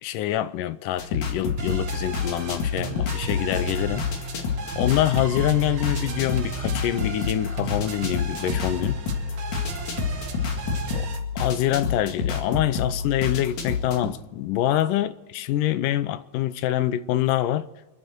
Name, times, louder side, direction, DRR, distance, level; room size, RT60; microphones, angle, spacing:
voice 1, 0.0-4.1 4.8-9.0 10.9-11.1 11.4-17.7, left 12 dB, 80° left, 2.2 m, -25 dB
sound 1, 1.0-14.1, left 6 dB, 60° left, 3.2 m, -29 dB
sound 2, 1.6-11.2, right 4 dB, 45° right, 1.8 m, -34 dB
29.0 x 11.0 x 4.5 m
omnidirectional pair, 3.8 m